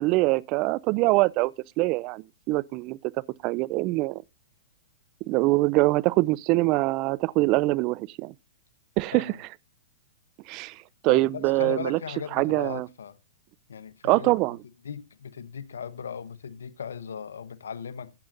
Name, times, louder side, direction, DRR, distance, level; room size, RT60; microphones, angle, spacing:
voice 1, 0.0-3.1 3.4-4.2 5.3-8.3 9.0-9.5 10.5-12.0 12.3-12.9 14.0-14.6, right 21 dB, 40° right, 0.5 m, -24 dB
voice 2, 11.1-13.2 13.7-14.3 14.8-18.1, left 7 dB, 80° left, 1.0 m, -37 dB
15.0 x 8.6 x 2.5 m
hypercardioid pair, 115°, 0 cm